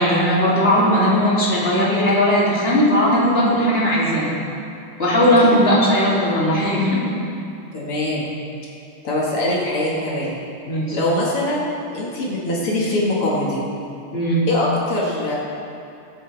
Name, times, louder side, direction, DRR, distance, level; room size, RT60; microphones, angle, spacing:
voice 1, 0.0-4.3 5.0-7.0 10.7-11.0 14.1-14.4, equal, 25° left, -8 dB, 3.3 m, -17 dB
voice 2, 7.7-8.3 9.0-10.4 10.9-11.7 11.9-13.6 14.5-15.4, left 1 dB, 80° left, -5 dB, 2.9 m, -22 dB
23.0 x 8.7 x 3.5 m, 2.6 s
omnidirectional pair, 2.4 m